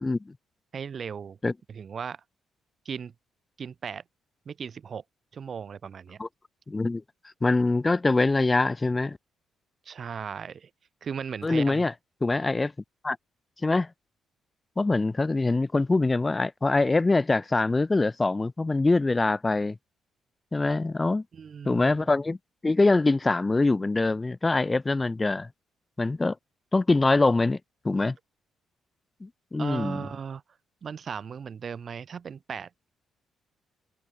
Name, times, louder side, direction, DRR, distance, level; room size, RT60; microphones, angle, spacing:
voice 1, 0.0-0.3 1.4-1.5 6.2-6.3 6.7-7.0 7.4-9.2 11.4-11.9 12.2-12.7 13.0-13.2 13.6-13.9 14.8-19.7 20.5-21.2 21.6-22.4 22.6-25.5 26.0-26.3 26.7-27.6 27.8-28.1 29.2-30.0, left 3 dB, 20° left, 0.8 m, -24 dB
voice 2, 0.7-1.4 1.7-2.2 2.9-3.1 3.6-4.0 4.5-5.0 5.3-6.2 9.9-10.7 11.0-11.8 21.3-21.9 29.6-30.4 30.8-32.7, right 6 dB, 50° right, 5.6 m, -36 dB
open air
cardioid pair, 90°, 0 cm